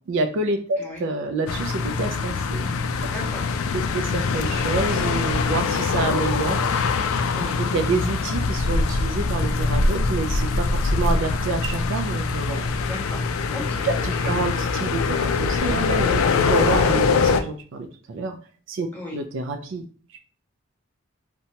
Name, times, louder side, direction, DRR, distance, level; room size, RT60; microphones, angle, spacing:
voice 1, 0.1-2.7 3.7-6.6 7.6-12.7 13.8-16.2 16.5-18.4 18.7-19.8 20.1-20.2, right 3 dB, 65° right, 7 dB, 0.3 m, -28 dB
sound 1, 1.5-17.4, left 4 dB, 80° left, 0.3 m, -23 dB
voice 2, 3.1-3.5 7.3-7.6 12.8-13.2 13.5-14.3 16.2-16.5 18.9-19.2, left 1 dB, 10° left, -3 dB, 1.0 m, -36 dB
2.8 x 2.2 x 2.7 m, 0.41 s
head